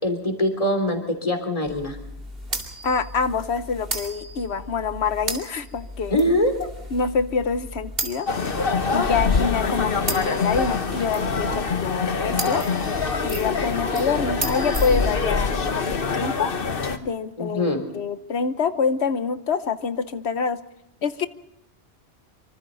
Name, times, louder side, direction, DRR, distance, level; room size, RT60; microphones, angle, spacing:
voice 1, 0.0-2.0 6.1-6.5 9.1-9.3 17.4-17.8, left 1 dB, 30° left, 4 dB, 3.4 m, -23 dB
sound 1, 1.6-15.2, right 1 dB, 60° right, 2.8 m, -35 dB
voice 2, 2.8-6.2 6.9-8.3 8.9-12.6 13.2-16.5 17.0-20.6 21.0-21.3, left 5 dB, 75° left, 11 dB, 1.2 m, -26 dB
sound 2, 8.3-17.0, left 4 dB, 55° left, 1.4 m, -24 dB
25.5 x 25.0 x 4.0 m, 0.81 s
omnidirectional pair, 1.1 m